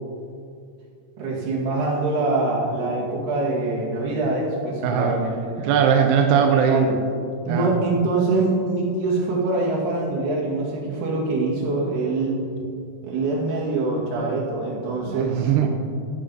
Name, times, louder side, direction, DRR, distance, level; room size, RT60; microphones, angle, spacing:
voice 1, 1.2-5.7 6.4-7.0 7.5-12.4 13.0-15.5, right 3 dB, 60° right, -4 dB, 3.8 m, -24 dB
voice 2, 4.8-5.2 5.6-6.8 7.5-7.7 15.1-15.7, right 7 dB, 80° right, 3 dB, 2.4 m, -20 dB
16.5 x 7.7 x 4.0 m, 2.3 s
omnidirectional pair, 5.4 m